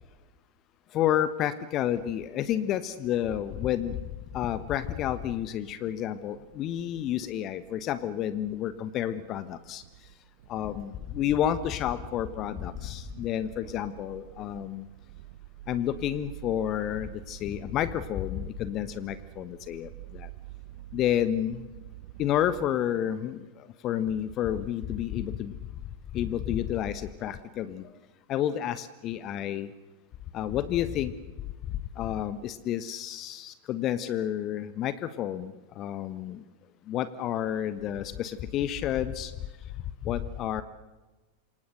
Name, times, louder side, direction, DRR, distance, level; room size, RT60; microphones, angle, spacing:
voice 1, 0.9-4.0 4.3-9.8 10.5-14.8 15.7-19.9 20.9-21.6 22.2-23.4 23.8-25.5 26.1-27.8 28.3-29.7 30.3-31.1 32.0-36.4 36.9-39.3 40.1-40.6, left 11 dB, 35° left, 14 dB, 1.3 m, -30 dB
sound 1, 3.4-22.7, right 15 dB, 50° right, 1.1 m, -49 dB
28.5 x 25.5 x 6.6 m, 1.2 s
figure-of-eight pair, 90°, 0 cm